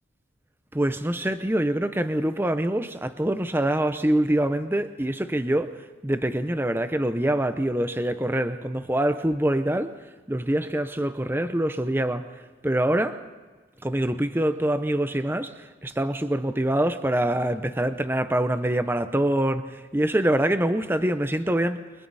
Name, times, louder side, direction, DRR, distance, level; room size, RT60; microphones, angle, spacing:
voice 1, 0.7-5.7 6.0-10.0 10.3-12.3 12.6-13.2 13.8-21.8, right 1 dB, 10° right, 0.8 m, -25 dB
30.0 x 23.5 x 4.2 m
head